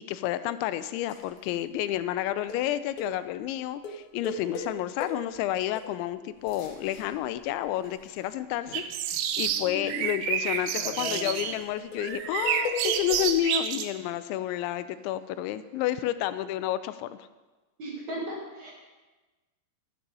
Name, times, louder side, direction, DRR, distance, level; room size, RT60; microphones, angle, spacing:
voice 1, 0.1-17.2, left 13 dB, 85° left, 13 dB, 2.8 m, -30 dB
sound 1, 1.1-1.4 1.9-2.0 2.5-2.7 3.0-3.2 3.8-5.4 5.8-5.9 6.4-8.2 8.5-13.3, left 3 dB, 60° left, 2.2 m, -38 dB
sound 2, 8.7-11.6 12.0-13.9, right 9 dB, 80° right, 2.7 m, -29 dB
voice 2, 17.8-18.7, right 1 dB, 45° right, -3 dB, 3.0 m, -36 dB
12.0 x 9.9 x 5.4 m, 1.2 s
omnidirectional pair, 5.2 m